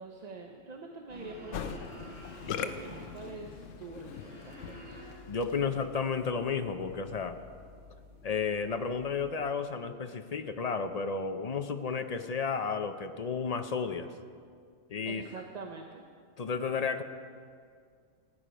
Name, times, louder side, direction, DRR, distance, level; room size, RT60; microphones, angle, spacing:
voice 1, 0.0-2.1 2.5-5.0 5.6-5.7 15.1-16.1, right 3 dB, 40° right, 2 dB, 0.8 m, -45 dB
sound 1, 1.1-9.3, left 1 dB, 5° right, 2.7 m, -50 dB
Musical instrument, 1.5-5.8, left 8 dB, 75° left, 1.0 m, -41 dB
voice 2, 5.3-7.4 8.2-14.1 14.9-15.2 16.4-17.0, left 5 dB, 45° left, 8 dB, 0.5 m, -32 dB
15.5 x 10.0 x 5.1 m, 2.1 s
omnidirectional pair, 1.3 m